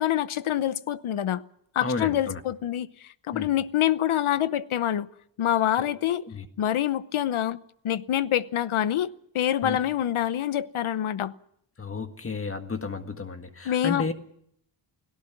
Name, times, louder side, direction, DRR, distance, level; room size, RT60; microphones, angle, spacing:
voice 1, 0.0-1.4 1.7-5.1 5.4-6.3 6.6-7.6 7.8-11.3 13.6-14.1, left 11 dB, 90° left, 1.0 m, -26 dB
voice 2, 1.8-2.4 3.3-3.5 5.8-5.9 6.3-6.5 9.6-9.8 11.8-14.1, left 4 dB, 25° left, 1.7 m, -32 dB
29.0 x 17.5 x 6.0 m
wide cardioid pair, 175°, 48 cm